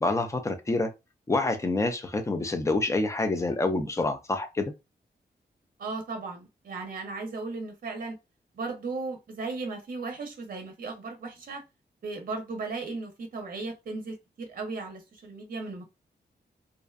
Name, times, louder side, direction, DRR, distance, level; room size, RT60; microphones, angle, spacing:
voice 1, 0.0-0.9 1.3-4.7, left 2 dB, 15° left, 0.4 m, -27 dB
voice 2, 5.8-8.2 8.5-11.6 12.0-15.8, right 3 dB, 55° right, 0.6 m, -36 dB
2.5 x 2.1 x 2.4 m
wide cardioid pair, 155°, 18 cm